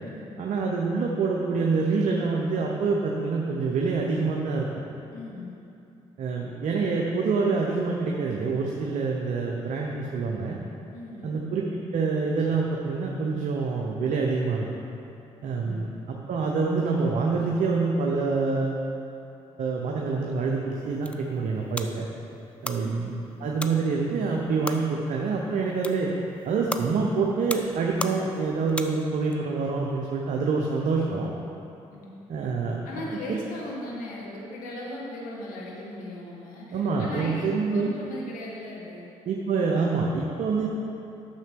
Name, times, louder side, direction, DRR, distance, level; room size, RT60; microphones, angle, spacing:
voice 1, 0.4-4.7 6.2-10.6 11.2-14.6 15.4-15.9 16.3-18.8 19.6-22.1 22.6-23.1 23.4-26.1 26.4-31.3 32.3-32.8 33.3-33.4 36.7-38.0 39.3-40.7, right 4 dB, 65° right, -1 dB, 0.7 m, -26 dB
voice 2, 5.1-5.6 10.9-11.4 15.5-15.9 22.8-23.0 31.9-32.1 32.8-39.1, left 1 dB, 80° left, -3 dB, 1.4 m, -38 dB
sound 1, 20.7-29.4, left 1 dB, 10° left, 0.5 m, -38 dB
9.1 x 6.8 x 3.6 m, 2.8 s
hypercardioid pair, 50°, 14 cm